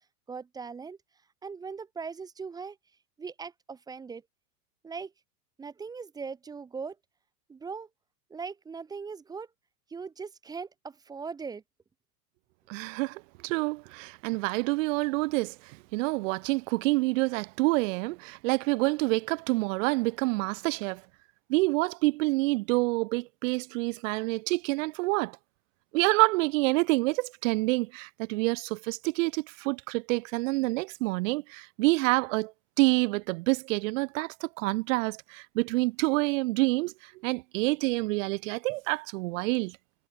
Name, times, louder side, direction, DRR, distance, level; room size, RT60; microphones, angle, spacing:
voice 1, 0.3-1.0 1.4-2.8 3.2-4.2 4.8-5.1 5.6-7.0 7.5-7.9 8.3-9.5 9.9-11.6, right 5 dB, 10° right, 0.5 m, -39 dB
voice 2, 12.7-21.0 21.5-25.4 25.9-32.5 32.8-39.8, right 24 dB, 55° right, 1.2 m, -27 dB
hypercardioid pair, 130°, 47 cm